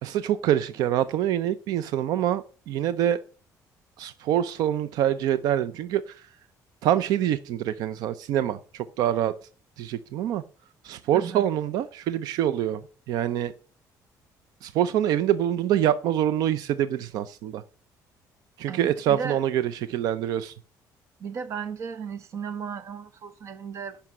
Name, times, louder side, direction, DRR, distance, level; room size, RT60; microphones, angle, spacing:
voice 1, 0.0-3.2 4.0-6.3 6.8-9.3 9.8-10.4 10.8-12.8 13.1-13.5 14.6-17.6 18.6-20.5, right 11 dB, 70° right, 0.6 m, -25 dB
voice 2, 11.1-11.5 18.7-19.4 21.2-24.0, right 6 dB, 45° right, 1.0 m, -35 dB
11.0 x 5.8 x 7.4 m
cardioid pair, 165°, 7 cm